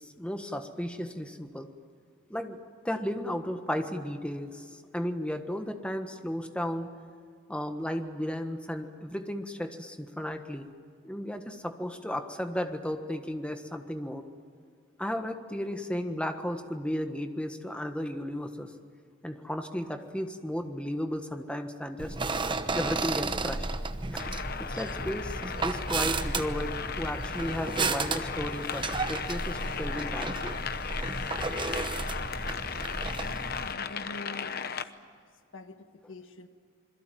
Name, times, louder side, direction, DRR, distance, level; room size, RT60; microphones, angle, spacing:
voice 1, 0.0-1.7 2.3-2.6 2.8-6.9 7.5-10.7 11.0-14.2 15.0-18.7 19.2-22.2 22.7-23.7 24.1-24.3 24.6-30.6 31.2-31.3, equal, 5° left, 6 dB, 1.4 m, -34 dB
sound 1, 22.0-33.7, right 3 dB, 25° right, 1.0 m, -33 dB
sound 2, 24.2-34.8, left 6 dB, 45° left, 0.9 m, -36 dB
voice 2, 33.2-34.7 35.5-36.5, left 2 dB, 70° left, 7 dB, 1.6 m, -45 dB
27.0 x 22.0 x 9.2 m, 2.1 s
head